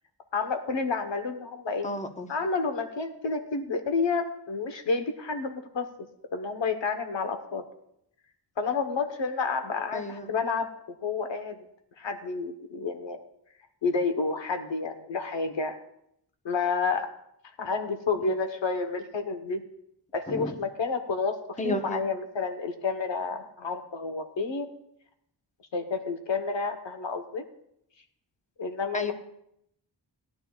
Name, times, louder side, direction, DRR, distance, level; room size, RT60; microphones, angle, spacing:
voice 1, 0.3-1.9 2.3-5.9 6.3-7.6 8.6-10.7 11.0-11.6 12.0-13.2 13.8-15.8 16.4-17.1 17.6-19.6 20.1-24.7 25.7-27.4 28.6-29.1, left 4 dB, 85° left, 6 dB, 1.2 m, -30 dB
voice 2, 1.8-2.3 9.9-10.3 18.2-18.4 20.3-20.5 21.6-22.0 28.9-29.1, left 1 dB, 15° left, 5 dB, 1.0 m, -32 dB
18.5 x 11.0 x 2.4 m, 0.75 s
wide cardioid pair, 110°, 44 cm